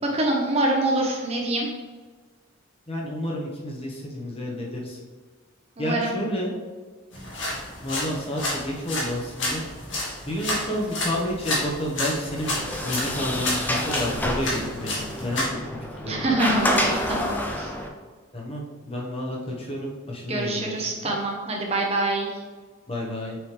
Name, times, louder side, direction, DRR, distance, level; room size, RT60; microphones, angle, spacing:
voice 1, 0.0-1.7 5.8-6.1 16.1-17.7 20.3-22.4, right 2 dB, 30° right, -1 dB, 0.9 m, -25 dB
voice 2, 2.9-5.0 5.8-6.5 7.8-9.6 10.3-12.6 12.8-15.6 15.9-16.2 18.3-20.7 22.9-23.4, equal, 25° left, -3 dB, 1.2 m, -30 dB
sound 1, 7.1-15.5, left 1 dB, 60° left, 1.9 m, -31 dB
Sliding door, 12.3-17.9, left 1 dB, 10° left, 0.5 m, -28 dB
6.3 x 5.0 x 3.4 m, 1.5 s
head